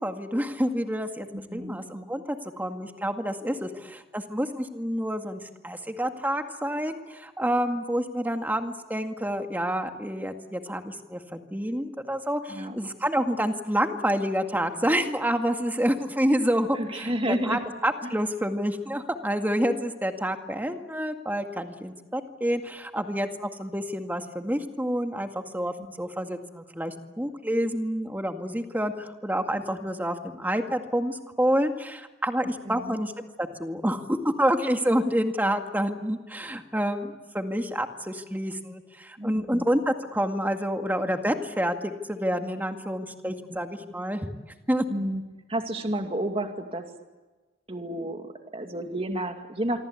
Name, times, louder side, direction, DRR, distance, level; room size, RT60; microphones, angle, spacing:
voice 1, 0.0-1.3 1.5-25.3 25.5-33.1 33.4-44.3 44.7-44.9, equal, 10° right, 5 dB, 2.0 m, -28 dB
voice 2, 1.3-1.8 12.5-12.7 16.7-17.6 18.0-18.1 25.8-26.2 32.6-33.0 39.2-39.7 43.5-43.9 44.9-45.2 45.5-46.9 47.7-49.8, right 1 dB, 30° right, 4 dB, 2.5 m, -31 dB
27.0 x 24.5 x 8.4 m, 1.2 s
head